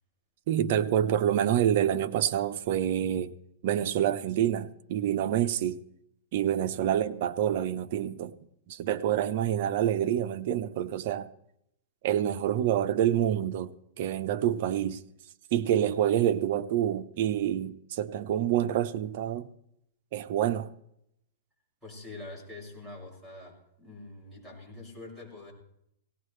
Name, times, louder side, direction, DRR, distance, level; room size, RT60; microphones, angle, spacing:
voice 1, 0.5-3.3 3.6-5.8 6.3-8.3 8.7-11.3 12.0-13.7 14.0-15.0 15.5-19.5 20.1-20.7, right 10 dB, 55° right, 1.0 m, -27 dB
voice 2, 21.8-25.5, left 2 dB, 5° right, 6.3 m, -45 dB
18.5 x 17.5 x 3.3 m
hypercardioid pair, 145°, 0 cm